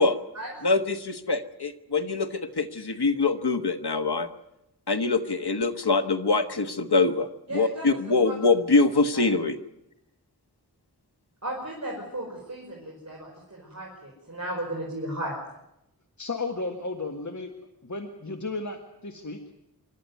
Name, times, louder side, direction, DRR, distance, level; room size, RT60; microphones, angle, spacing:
voice 1, 0.6-4.3 4.9-9.6, left 3 dB, 85° left, 8 dB, 1.3 m, -24 dB
voice 2, 7.5-7.9 8.2-8.3 9.1-9.2 11.4-15.3, right 1 dB, 45° right, -3 dB, 5.3 m, -35 dB
voice 3, 16.2-17.5 17.8-19.5, left 3 dB, 50° left, 5 dB, 1.7 m, -34 dB
26.5 x 12.0 x 9.4 m, 0.85 s
wide cardioid pair, 50°, 38 cm